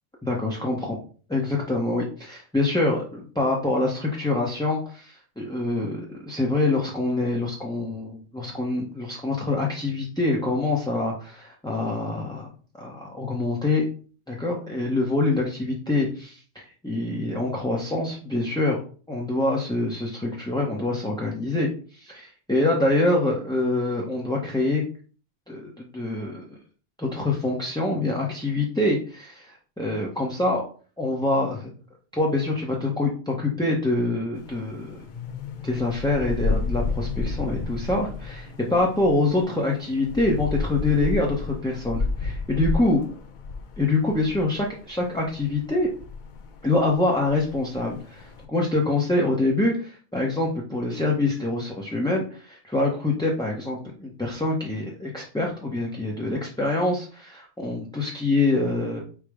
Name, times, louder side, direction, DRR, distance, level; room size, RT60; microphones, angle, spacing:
voice 1, 0.2-1.0 1.3-12.5 12.8-13.8 14.3-18.8 19.1-24.8 25.5-26.4 27.0-30.6 31.0-31.7 32.1-35.0 35.6-43.0 43.8-45.9 46.6-59.0, left 2 dB, 5° left, -3 dB, 0.5 m, -25 dB
sound 1, 34.4-48.4, left 4 dB, 55° left, 0.6 m, -32 dB
4.8 x 2.1 x 4.7 m, 0.40 s
omnidirectional pair, 1.1 m